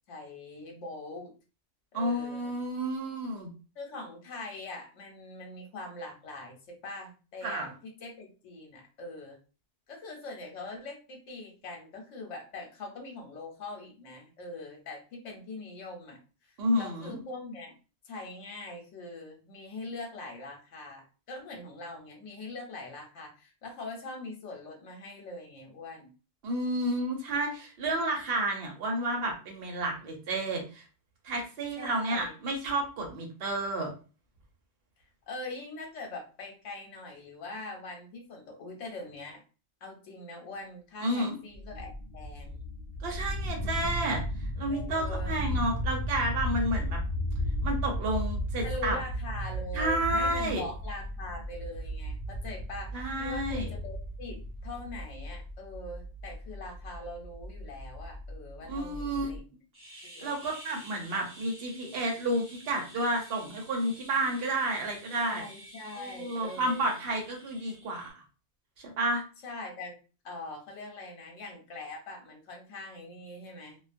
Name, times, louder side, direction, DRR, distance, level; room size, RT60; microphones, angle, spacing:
voice 1, 0.1-1.3 1.9-2.6 3.8-9.4 9.9-17.7 18.0-26.1 31.8-32.4 35.3-39.4 39.8-42.6 44.7-45.4 48.6-59.4 60.0-60.4 65.2-66.9 69.4-70.0 70.2-73.8, left 2 dB, 85° left, 1 dB, 1.0 m, -42 dB
voice 2, 1.9-3.5 7.4-7.7 16.6-17.2 26.4-30.8 31.2-33.9 41.0-41.4 43.0-44.2 44.6-47.0 47.6-49.0 49.7-50.6 52.9-53.7 58.7-59.3 60.2-65.4 66.0-68.2 68.8-69.2, right 1 dB, 60° right, 1 dB, 1.0 m, -31 dB
sound 1, 41.5-59.4, equal, 60° left, 0.7 m, -35 dB
sound 2, 59.7-68.1, right 1 dB, 10° right, 0.9 m, -50 dB
2.3 x 2.3 x 2.5 m, 0.34 s
omnidirectional pair, 1.2 m